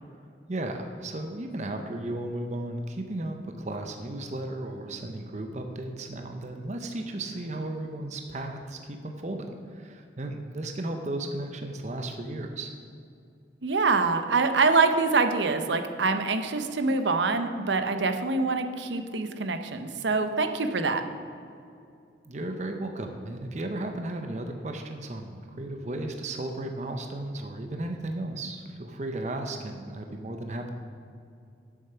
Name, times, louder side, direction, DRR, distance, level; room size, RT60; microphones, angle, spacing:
voice 1, 0.5-12.7 22.3-30.7, right 1 dB, 40° right, 5 dB, 0.7 m, -35 dB
voice 2, 13.6-21.0, right 4 dB, 85° right, 8 dB, 0.8 m, -25 dB
10.0 x 7.3 x 5.6 m, 2.5 s
head